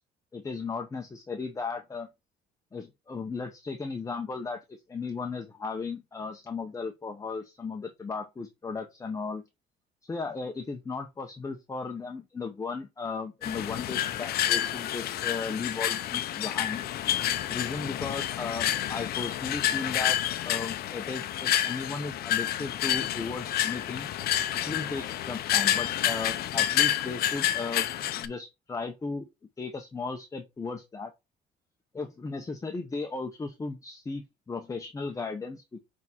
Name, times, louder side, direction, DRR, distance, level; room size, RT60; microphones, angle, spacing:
voice 1, 0.3-2.1 2.7-9.4 10.0-16.8 17.5-20.2 20.4-24.1 24.5-27.9 28.1-29.3 29.6-31.1 31.9-35.8, left 4 dB, 20° left, 0.9 m, -36 dB
sound 1, 13.4-28.3, left 12 dB, 65° left, 0.7 m, -29 dB
6.0 x 3.7 x 4.3 m
cardioid pair, 110°, 17 cm